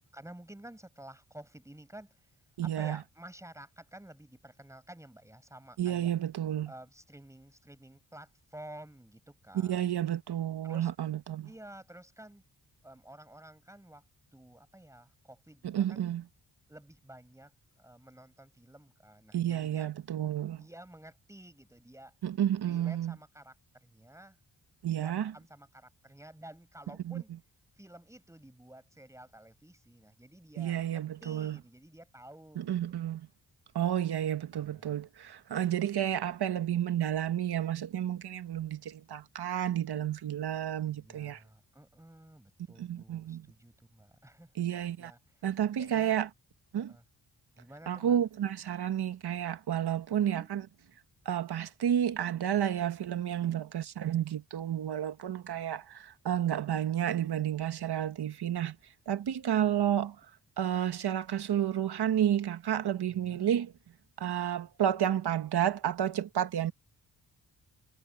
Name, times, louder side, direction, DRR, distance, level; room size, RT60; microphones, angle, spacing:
voice 1, 0.1-6.1 6.7-9.9 10.6-10.9 11.4-12.4 12.8-14.0 14.3-16.0 16.7-17.5 17.8-19.9 20.5-22.1 22.6-24.4 24.9-27.3 27.8-32.8 34.5-35.0 40.9-44.5 45.0-46.2 46.7-47.0 47.6-48.2 50.2-50.5 63.1-63.5, right 1 dB, 5° right, 6.0 m, -52 dB
voice 2, 2.6-3.0 5.8-6.7 9.5-11.5 15.6-16.2 19.3-20.7 22.2-23.1 24.8-25.3 27.0-27.2 30.6-31.6 32.5-33.3 33.7-41.4 42.8-43.5 44.6-45.1 45.4-46.3 46.7-46.9 47.9-50.7 51.2-58.8 59.1-60.1 60.6-63.7 64.2-66.7, right 10 dB, 80° right, 1.3 m, -31 dB
wide cardioid pair, 180°, 39 cm